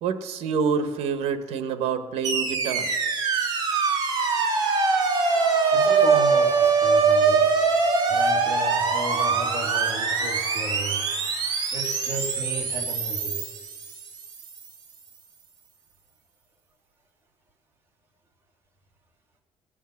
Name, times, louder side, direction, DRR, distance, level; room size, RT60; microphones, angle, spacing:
voice 1, 0.0-3.0, right 6 dB, 80° right, 10 dB, 1.2 m, -27 dB
sound 1, 2.2-14.5, right 5 dB, 40° right, 2.0 m, -23 dB
voice 2, 5.7-7.5 8.1-11.0 11.7-13.4, right 2 dB, 20° right, 0 dB, 2.2 m, -34 dB
19.0 x 7.4 x 7.0 m, 1.5 s
cardioid pair, 170°, 11 cm